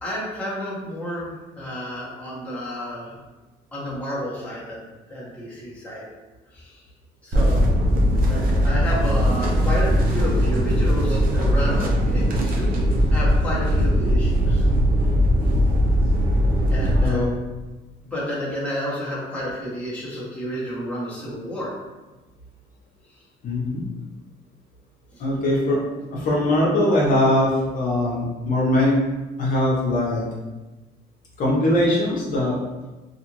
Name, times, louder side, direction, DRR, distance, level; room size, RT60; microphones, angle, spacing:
voice 1, 0.0-3.2 3.7-6.0 6.5-6.8 7.2-7.6 8.3-12.7 13.1-14.7 16.7-17.3 18.0-21.7 25.1-25.2, equal, 10° left, -7 dB, 0.9 m, -31 dB
sound 1, 7.3-17.1, equal, 60° right, 0.6 m, -19 dB
voice 2, 17.0-17.3 23.4-23.8 25.2-25.8 26.1-29.0 29.4-30.3 31.4-32.6, left 1 dB, 55° left, -5 dB, 0.8 m, -21 dB
2.5 x 2.5 x 2.9 m, 1.2 s
cardioid pair, 110°, 17 cm